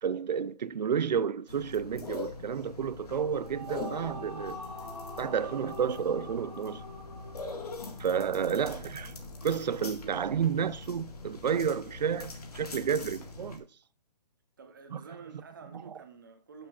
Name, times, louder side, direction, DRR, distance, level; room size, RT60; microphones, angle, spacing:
voice 1, 0.0-4.6 5.2-6.8 8.0-9.1 9.4-13.7 14.9-15.0 15.9-16.0, right 7 dB, 85° right, 0.6 m, -31 dB
sound 1, 1.5-13.6, left 3 dB, 65° left, 1.8 m, -43 dB
sound 2, 3.1-8.6, left 1 dB, 40° left, 3.0 m, -44 dB
voice 2, 14.6-16.7, right 5 dB, 30° right, 1.0 m, -49 dB
11.5 x 6.7 x 2.4 m
hypercardioid pair, 180°, 21 cm